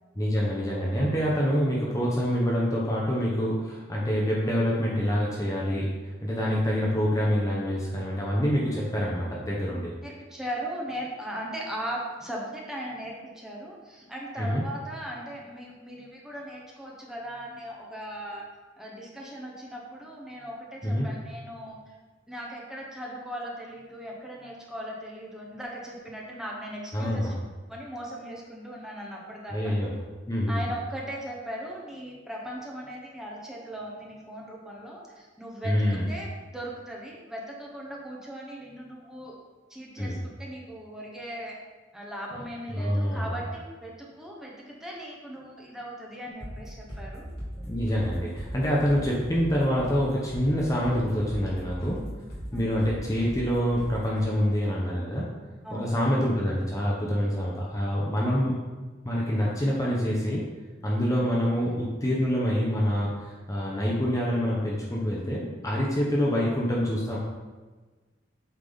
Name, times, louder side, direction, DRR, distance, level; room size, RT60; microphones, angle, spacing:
voice 1, 0.2-5.9 6.2-9.9 14.4-14.6 20.8-21.1 26.9-27.4 29.5-30.0 30.3-30.6 35.6-36.0 40.0-40.2 42.7-43.4 47.6-52.0 52.5-55.3 55.7-58.5 59.0-60.4 60.8-67.2, equal, 20° left, -5 dB, 0.9 m, -26 dB
voice 2, 10.0-18.4 18.8-21.9 22.3-27.3 27.7-29.8 30.5-35.7 36.1-39.3 39.7-41.6 41.9-47.2 52.5-52.7 55.6-55.9, equal, 5° right, -3 dB, 1.1 m, -38 dB
sound 1, 46.4-54.2, equal, 60° left, 2.0 m, -39 dB
8.2 x 3.6 x 3.9 m, 1.3 s
head